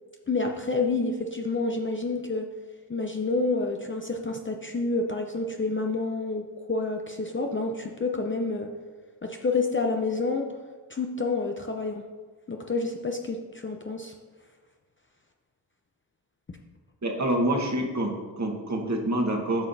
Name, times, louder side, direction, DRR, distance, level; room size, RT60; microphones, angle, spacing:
voice 1, 0.3-2.5 2.9-6.4 6.7-8.7 9.2-10.5 10.9-12.0 12.5-14.1, left 3 dB, 25° left, 3 dB, 0.6 m, -28 dB
voice 2, 17.0-19.7, right 1 dB, 35° right, 1 dB, 1.4 m, -27 dB
8.9 x 5.5 x 2.7 m, 1.4 s
supercardioid pair, 45°, 49 cm